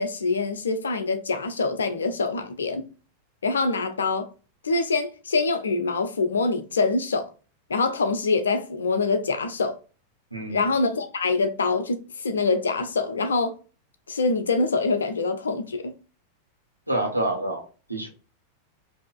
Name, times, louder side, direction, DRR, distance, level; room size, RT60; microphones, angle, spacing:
voice 1, 0.0-2.9 3.4-4.3 4.6-7.3 7.7-9.8 10.5-13.6 14.1-15.9, left 3 dB, 70° left, 0.7 m, -25 dB
voice 2, 10.3-10.6 16.9-18.1, right 1 dB, 90° right, 1.1 m, -28 dB
5.0 x 2.8 x 2.3 m
figure-of-eight pair, 90°, 0 cm